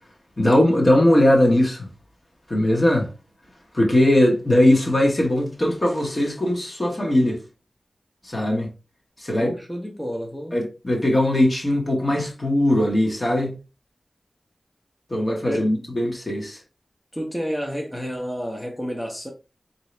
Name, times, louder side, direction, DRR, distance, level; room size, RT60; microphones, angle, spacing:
voice 1, 0.4-1.9 2.5-3.1 3.7-7.4 8.3-8.7 9.2-9.5 10.5-13.5 15.1-16.6, left 1 dB, 40° left, 1.1 m, -19 dB
voice 2, 9.3-10.6 15.4-16.0 17.1-19.3, equal, 5° left, 0.8 m, -30 dB
3.7 x 2.7 x 3.2 m
wide cardioid pair, 85°, 0 cm